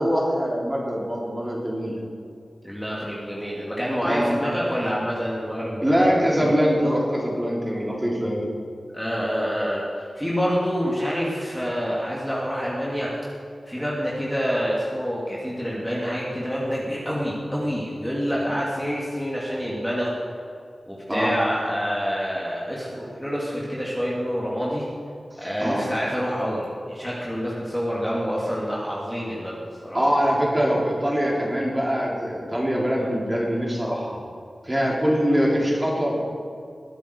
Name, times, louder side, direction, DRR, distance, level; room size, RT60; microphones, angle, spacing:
voice 1, 0.0-2.0 4.0-4.3 5.8-8.4 21.1-21.4 25.6-25.8 29.9-34.2 34.6-36.1, equal, 15° right, -3 dB, 3.7 m, -23 dB
voice 2, 2.6-6.6 8.9-13.1 13.7-20.1 20.9-24.9 25.4-30.0 33.0-33.1, equal, 5° left, -6 dB, 2.8 m, -27 dB
21.0 x 9.8 x 4.8 m, 2.4 s
wide cardioid pair, 85°, 0 cm